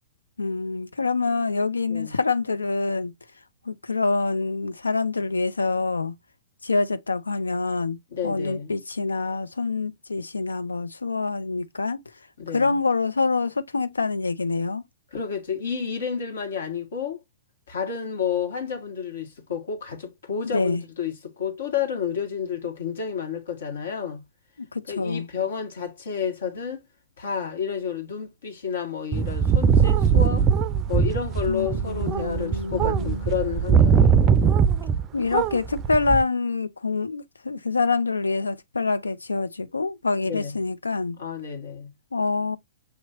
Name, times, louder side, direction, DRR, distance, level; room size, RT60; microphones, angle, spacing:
voice 1, 0.4-3.1 3.7-6.1 6.6-8.0 8.2-12.0 12.5-14.8 20.5-20.8 24.7-25.3 31.5-33.2 35.1-41.2 42.1-42.6, left 3 dB, 85° left, 0.6 m, -26 dB
voice 2, 8.1-8.7 12.4-12.8 15.1-17.2 17.7-24.2 24.9-26.8 27.2-30.5 30.9-34.2 40.2-40.6 41.2-41.9, left 7 dB, 65° left, 1.9 m, -30 dB
sound 1, 29.1-35.1 35.3-36.2, right 7 dB, 25° right, 0.4 m, -21 dB
6.6 x 2.9 x 2.8 m
figure-of-eight pair, 115°, 0 cm